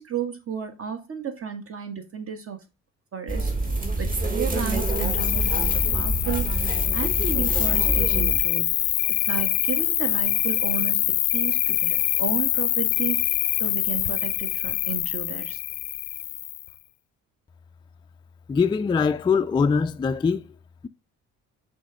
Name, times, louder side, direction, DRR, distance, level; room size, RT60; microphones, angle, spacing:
voice 1, 0.0-2.6 3.1-3.5 4.0-5.6 5.9-8.8 9.2-11.0 11.3-15.6, right 8 dB, 45° right, 1.5 m, -33 dB
sound 1, 3.3-8.4, right 2 dB, 30° right, 1.7 m, -26 dB
Cricket, 4.7-16.7, left 15 dB, 85° left, 0.5 m, -25 dB
voice 2, 18.5-20.4, left 5 dB, 15° left, 0.3 m, -22 dB
6.1 x 3.1 x 4.9 m
cardioid pair, 90°, 30 cm